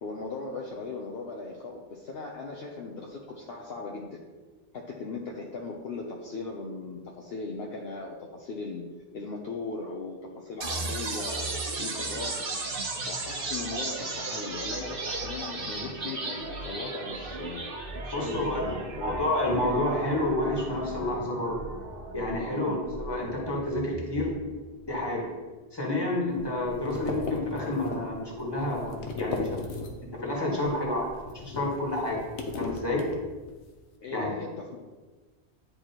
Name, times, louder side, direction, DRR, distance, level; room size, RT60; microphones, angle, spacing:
voice 1, 0.0-4.2 4.7-12.4 13.1-17.6 18.0-19.1 22.5-22.8 34.0-34.9, left 3 dB, 65° left, -1 dB, 0.9 m, -38 dB
sound 1, 10.6-24.6, right 3 dB, 55° right, 1.1 m, -36 dB
voice 2, 18.1-18.7 19.0-21.6 22.1-24.4 24.8-25.3 25.7-29.6 30.1-31.1 31.4-32.2 32.6-33.0 34.1-34.3, left 1 dB, 20° left, -4 dB, 1.7 m, -29 dB
sound 2, 26.3-30.2 30.5-33.6, left 3 dB, 90° left, 1.1 m, -37 dB
10.0 x 4.6 x 2.9 m, 1.3 s
omnidirectional pair, 1.1 m